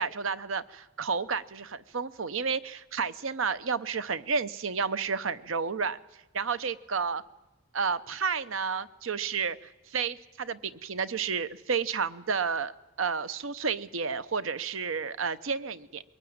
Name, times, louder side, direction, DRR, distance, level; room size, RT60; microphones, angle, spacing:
voice 1, 0.0-6.0 6.3-7.2 7.7-9.6 9.9-12.7 13.0-16.0, right 5 dB, 80° right, 14 dB, 0.8 m, -31 dB
22.5 x 18.0 x 8.7 m, 1.0 s
head